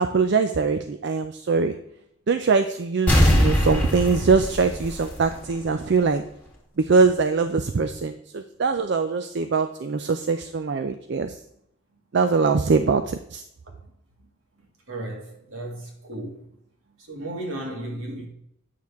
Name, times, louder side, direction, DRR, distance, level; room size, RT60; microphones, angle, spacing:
voice 1, 0.0-1.7 2.3-6.2 6.9-11.3 12.1-13.4, right 4 dB, 55° right, 0.4 m, -22 dB
sound 1, 3.1-5.7 6.0-6.1, equal, 5° left, 1.7 m, -21 dB
voice 2, 14.9-16.5 17.0-18.3, right 1 dB, 75° right, 2.1 m, -35 dB
9.2 x 6.5 x 3.5 m
head